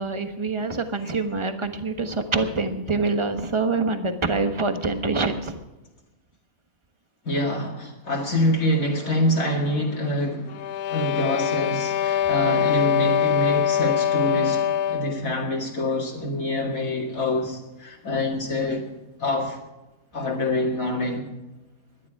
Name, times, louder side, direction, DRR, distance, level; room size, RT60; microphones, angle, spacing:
voice 1, 0.0-5.6, right 3 dB, 20° right, 1.3 m, -25 dB
voice 2, 7.3-18.9 19.2-19.6 20.1-21.3, left 1 dB, 65° left, 2.5 m, -26 dB
sound 1, 10.5-15.2, left 9 dB, 90° left, 1.2 m, -23 dB
19.0 x 12.5 x 4.9 m
omnidirectional pair, 1.6 m